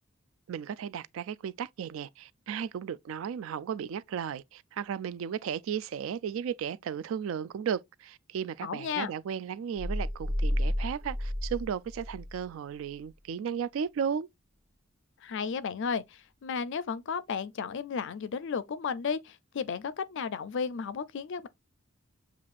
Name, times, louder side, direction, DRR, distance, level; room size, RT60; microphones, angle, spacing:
voice 1, 0.5-14.3, right 8 dB, 70° right, 0.3 m, -35 dB
voice 2, 8.6-9.1 15.2-21.5, left 6 dB, 65° left, 0.4 m, -33 dB
sound 1, 9.8-12.5, equal, 50° right, 0.7 m, -31 dB
7.2 x 2.5 x 2.4 m
head